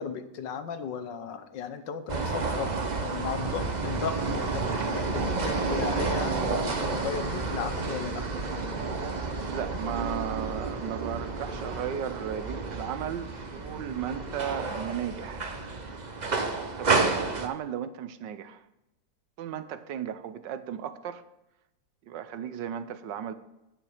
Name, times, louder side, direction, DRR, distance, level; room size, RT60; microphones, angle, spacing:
voice 1, 0.0-2.7 3.0-8.2, left 6 dB, 75° left, 9 dB, 1.6 m, -35 dB
sound 1, 2.1-17.5, right 3 dB, 30° right, 0.8 m, -30 dB
voice 2, 9.5-15.5 16.8-18.6 19.4-21.2 22.1-23.3, right 9 dB, 75° right, 12 dB, 1.4 m, -35 dB
9.7 x 9.3 x 5.0 m, 0.91 s
omnidirectional pair, 2.0 m